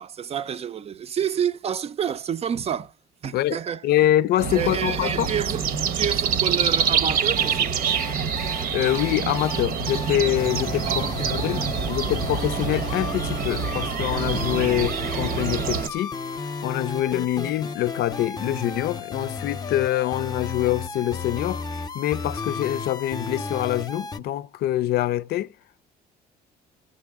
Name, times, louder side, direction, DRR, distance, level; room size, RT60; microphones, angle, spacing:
voice 1, 0.0-2.9 3.2-3.8 4.5-5.7 5.9-7.7 10.8-11.6, right 8 dB, 35° right, 0.5 m, -29 dB
voice 2, 3.3-5.3 8.7-16.1 16.6-25.5, left 13 dB, 70° left, 0.4 m, -25 dB
sound 1, 4.4-15.9, right 7 dB, 60° right, 0.9 m, -26 dB
sound 2, 7.4-24.2, left 4 dB, 25° left, 0.7 m, -34 dB
14.5 x 7.6 x 3.5 m
cardioid pair, 110°, 17 cm